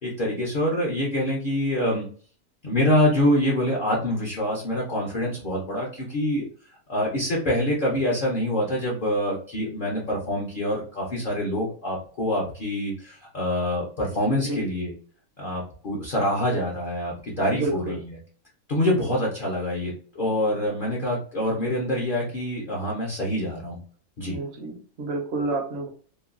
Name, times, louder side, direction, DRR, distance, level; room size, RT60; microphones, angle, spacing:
voice 1, 0.0-2.1 2.6-6.5 6.9-14.9 15.4-18.0 18.7-23.8 24.2-24.4, left 1 dB, 50° left, -3 dB, 0.6 m, -25 dB
voice 2, 17.5-18.0 24.3-25.9, right 2 dB, 55° right, 3 dB, 0.8 m, -29 dB
3.0 x 2.2 x 2.3 m, 0.44 s
omnidirectional pair, 1.6 m